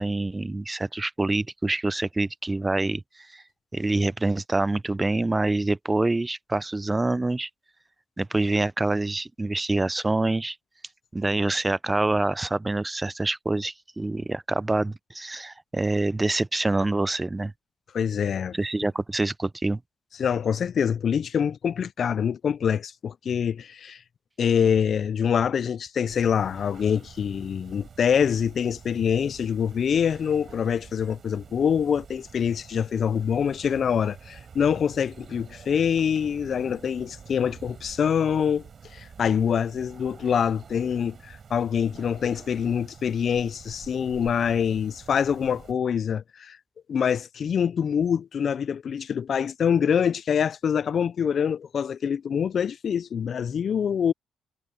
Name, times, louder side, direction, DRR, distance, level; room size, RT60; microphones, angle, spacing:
voice 1, 0.0-3.0 3.3-3.4 3.7-7.5 8.2-10.6 11.1-17.5 18.5-19.8, right 2 dB, 15° right, 0.4 m, -26 dB
voice 2, 17.9-18.6 20.2-24.0 24.4-38.6 38.9-46.6 46.9-54.1, left 7 dB, 55° left, 0.3 m, -25 dB
sound 1, 26.1-45.7, right 6 dB, 50° right, 4.2 m, -47 dB
cardioid pair, 90°, 0 cm